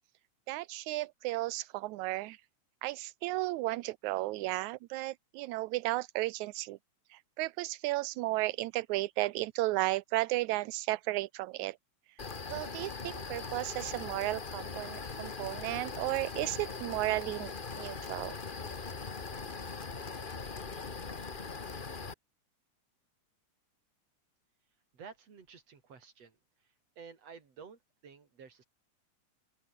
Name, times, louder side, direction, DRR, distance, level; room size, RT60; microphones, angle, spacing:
voice 1, 0.5-2.4 2.8-6.8 7.1-11.8 12.1-12.2 12.5-18.4, right 19 dB, 80° right, 2.0 m, -34 dB
sound 1, 12.2-22.1, left 4 dB, 90° left, 0.4 m, -41 dB
voice 2, 24.9-26.4 27.0-28.6, right 6 dB, 55° right, 4.4 m, -52 dB
open air
omnidirectional pair, 3.5 m